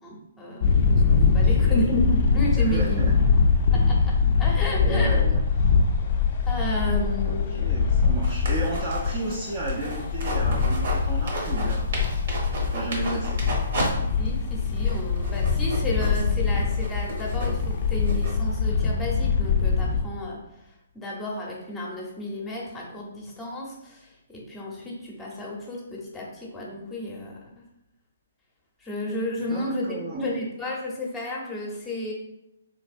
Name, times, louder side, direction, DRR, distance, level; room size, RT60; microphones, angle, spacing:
voice 1, 0.0-3.1 3.8-4.1 4.4-5.3 6.4-7.5 13.0-13.2 14.2-20.4 20.9-27.6 28.8-29.9 30.1-32.1, left 1 dB, 10° left, -3 dB, 0.8 m, -32 dB
sound 1, 0.6-20.0, left 5 dB, 45° left, 0.4 m, -23 dB
voice 2, 1.3-2.0 2.5-3.2 4.8-5.4 7.3-11.9 12.7-13.4 29.4-30.3, right 2 dB, 30° right, -4 dB, 0.5 m, -33 dB
sound 2, 8.2-11.0 11.3-13.9 14.3-14.4 14.8-18.3, right 1 dB, 60° right, 1.0 m, -33 dB
3.2 x 3.0 x 2.5 m, 0.84 s
hypercardioid pair, 150°, 0 cm